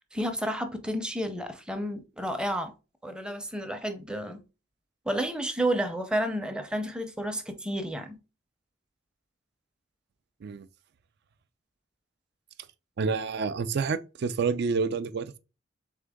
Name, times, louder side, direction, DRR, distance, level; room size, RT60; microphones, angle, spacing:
voice 1, 0.0-2.7 3.0-4.4 5.1-8.2, right 1 dB, 5° right, 0.6 m, -31 dB
voice 2, 13.0-15.4, right 5 dB, 60° right, 0.4 m, -28 dB
3.7 x 3.6 x 3.5 m
head